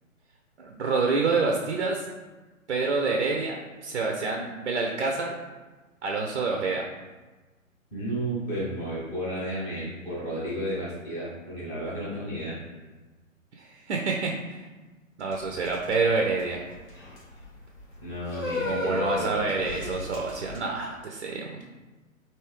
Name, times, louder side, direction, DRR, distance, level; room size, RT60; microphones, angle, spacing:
voice 1, 0.6-2.0 2.7-5.4 6.0-6.9 13.6-14.7 15.2-16.6 18.6-21.6, right 4 dB, 55° right, 1 dB, 0.5 m, -27 dB
voice 2, 7.9-12.5 18.0-19.7, right 1 dB, 5° left, -10 dB, 0.6 m, -33 dB
sound 1, 15.3-20.6, left 2 dB, 70° left, 1.5 m, -34 dB
3.4 x 2.7 x 3.1 m, 1.2 s
figure-of-eight pair, 135°, 41 cm